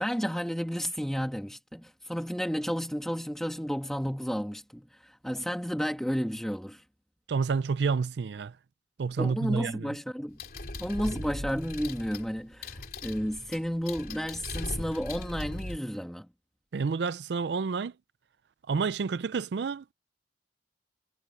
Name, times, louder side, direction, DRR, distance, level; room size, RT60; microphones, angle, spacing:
voice 1, 0.0-6.8 9.2-10.4 10.8-16.3, equal, 5° left, 1.9 m, -32 dB
voice 2, 7.3-8.5 9.0-9.9 16.7-17.9 18.7-19.8, right 5 dB, 70° right, 0.4 m, -29 dB
sound 1, 10.4-15.8, left 2 dB, 55° left, 3.1 m, -39 dB
head